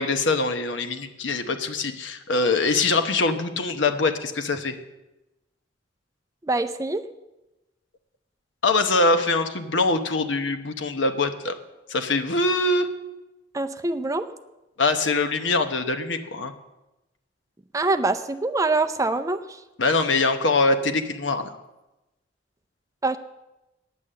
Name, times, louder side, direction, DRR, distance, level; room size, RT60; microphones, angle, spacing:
voice 1, 0.0-4.8 8.6-11.6 11.9-12.9 14.8-16.5 19.8-21.6, left 3 dB, 80° left, 8 dB, 0.9 m, -23 dB
voice 2, 6.4-7.0 13.5-14.3 17.7-19.6 23.0-23.2, right 3 dB, 15° right, 9 dB, 0.5 m, -24 dB
9.5 x 8.4 x 7.6 m, 1.0 s
head